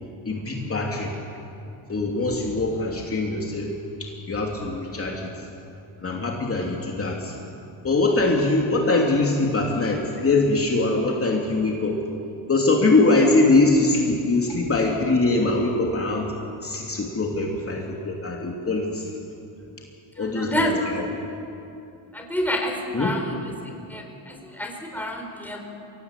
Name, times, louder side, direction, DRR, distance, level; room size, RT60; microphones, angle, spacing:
voice 1, 0.2-1.2 1.9-3.7 4.0-5.3 6.0-7.4 7.8-12.0 12.5-16.3 16.6-19.1 20.2-21.1 22.9-23.2, left 2 dB, 30° left, -1 dB, 3.1 m, -22 dB
voice 2, 20.1-20.9 22.1-23.3 23.6-25.6, left 1 dB, 5° left, 2 dB, 4.2 m, -28 dB
23.0 x 17.5 x 8.5 m, 2.7 s
cardioid pair, 90°, 45 cm